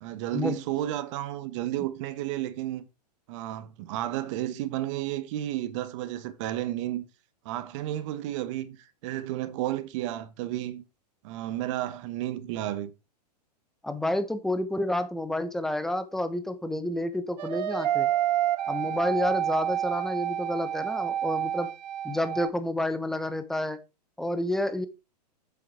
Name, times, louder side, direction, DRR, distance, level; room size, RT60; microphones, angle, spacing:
voice 1, 0.0-2.8 3.3-7.0 7.4-10.8 11.2-12.9, right 13 dB, 45° right, 1.2 m, -32 dB
voice 2, 13.8-18.1 18.7-21.7 22.0-23.8 24.2-24.9, left 1 dB, ahead, 1.0 m, -29 dB
sound 1, 17.4-22.5, right 11 dB, 75° right, 0.5 m, -28 dB
7.7 x 7.3 x 4.8 m
hypercardioid pair, 120°, 21 cm